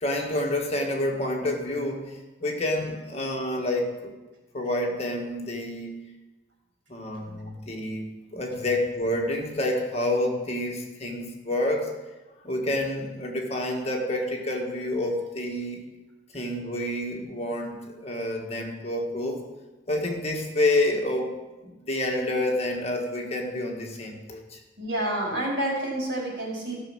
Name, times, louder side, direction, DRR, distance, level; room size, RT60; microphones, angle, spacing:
voice 1, 0.0-4.1 4.5-5.9 6.9-11.9 12.4-15.8 16.3-19.4 19.9-24.6, left 1 dB, 35° left, 0 dB, 1.7 m, -28 dB
voice 2, 24.8-26.8, right 1 dB, 85° right, -3 dB, 4.5 m, -29 dB
14.5 x 6.4 x 6.2 m, 1.1 s
head